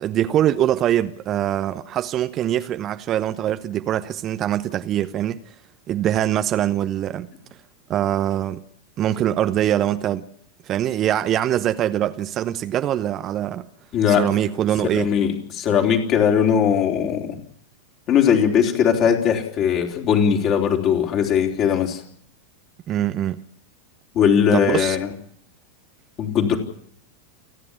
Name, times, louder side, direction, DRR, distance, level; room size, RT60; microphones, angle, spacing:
voice 1, 0.0-5.4 5.9-7.3 7.9-8.6 9.0-10.2 10.6-13.7 14.1-15.1 22.9-23.4 24.5-25.0, right 11 dB, 30° right, 0.9 m, -23 dB
voice 2, 13.9-14.3 15.0-17.4 18.1-22.0 24.1-25.1 26.2-26.6, left 8 dB, 35° left, 3.9 m, -19 dB
29.5 x 10.5 x 10.0 m
figure-of-eight pair, 90°, 0 cm